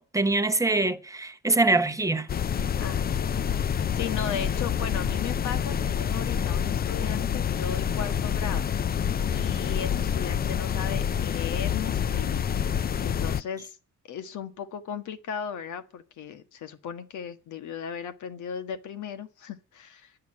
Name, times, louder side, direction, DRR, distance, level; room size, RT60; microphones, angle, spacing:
voice 1, 0.0-2.3, right 2 dB, 10° right, 1.1 m, -24 dB
sound 1, 2.3-13.4, left 8 dB, 30° left, 0.5 m, -27 dB
voice 2, 2.8-3.4 3.7-8.6 9.3-12.5 13.0-13.8 14.1-20.1, left 7 dB, 75° left, 1.6 m, -36 dB
9.8 x 6.6 x 8.8 m
cardioid pair, 90°, 30 cm